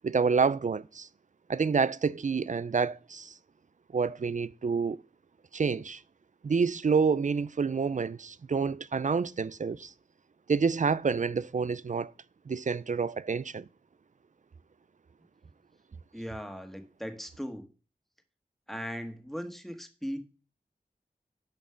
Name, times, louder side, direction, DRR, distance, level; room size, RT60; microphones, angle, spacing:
voice 1, 0.0-1.1 1.5-3.3 3.9-5.0 5.5-6.0 6.4-9.9 10.5-12.1 12.5-13.7, right 5 dB, 50° right, 0.4 m, -28 dB
voice 2, 16.1-17.7 18.7-20.2, equal, ahead, 1.6 m, -38 dB
7.5 x 5.3 x 5.7 m
wide cardioid pair, 45°, 16 cm